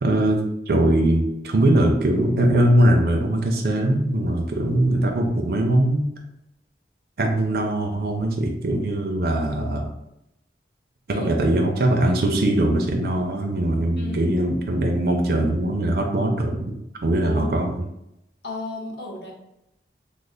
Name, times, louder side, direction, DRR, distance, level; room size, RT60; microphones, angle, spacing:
voice 1, 0.0-6.0 7.2-9.8 11.1-16.7 17.0-17.8, right 1 dB, 55° right, 2 dB, 0.4 m, -21 dB
voice 2, 14.0-14.3 17.2-17.5 18.4-19.3, left 2 dB, 65° left, -1 dB, 0.8 m, -33 dB
3.1 x 2.0 x 3.7 m, 0.84 s
head